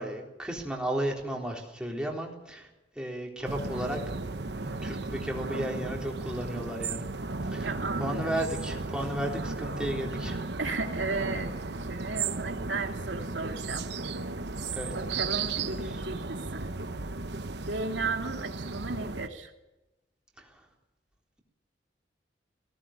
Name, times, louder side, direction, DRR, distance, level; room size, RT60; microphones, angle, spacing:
voice 1, 0.0-2.7 3.0-4.0 4.6-7.0 7.5-7.7 8.0-10.4 14.7-14.9, right 1 dB, 5° right, -1 dB, 3.8 m, -34 dB
sound 1, 3.4-19.3, right 3 dB, 65° right, 1.1 m, -35 dB
voice 2, 7.6-8.4 10.6-11.5 11.8-13.9 14.9-16.7 17.7-19.5, right 3 dB, 90° right, 3 dB, 2.6 m, -35 dB
18.0 x 17.5 x 9.0 m, 0.99 s
head